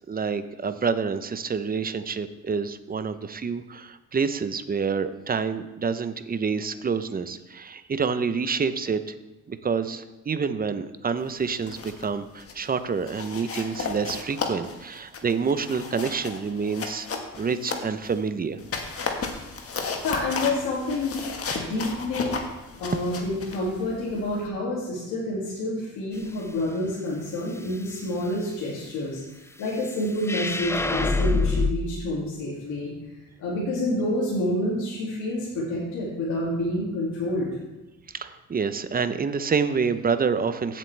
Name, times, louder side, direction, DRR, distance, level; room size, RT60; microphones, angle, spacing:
voice 1, 0.1-9.1 9.5-17.1 17.4-18.6 38.1-40.8, right 5 dB, 30° right, 11 dB, 0.7 m, -27 dB
sound 1, 11.4-12.1 12.4-12.7 13.1-18.2 18.6-24.5, left 4 dB, 50° left, 1.6 m, -34 dB
voice 2, 20.0-21.2 21.5-22.4 22.8-32.9 33.4-37.5, left 1 dB, 90° left, -6 dB, 2.5 m, -28 dB
sound 2, 30.2-31.7, left 3 dB, 10° left, 0.4 m, -24 dB
15.5 x 7.5 x 3.4 m, 1.1 s
cardioid pair, 90°, 30 cm